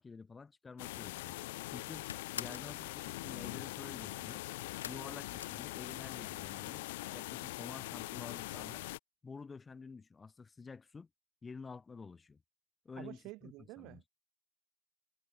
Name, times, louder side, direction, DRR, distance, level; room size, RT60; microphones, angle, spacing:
voice 1, 0.0-1.4 1.7-2.1 2.3-4.4 4.9-6.9 7.1-8.9 9.2-11.1 11.4-12.4 12.8-14.0, left 4 dB, 15° left, 5.5 m, -50 dB
sound 1, 0.8-9.0, left 20 dB, 60° left, 1.4 m, -42 dB
sound 2, 2.1-2.8 4.8-6.3 6.6-7.2 7.5-7.6 7.9-8.0, left 8 dB, 75° left, 4.0 m, -47 dB
voice 2, 13.0-14.1, right 21 dB, 45° right, 1.4 m, -49 dB
figure-of-eight pair, 85°, 0 cm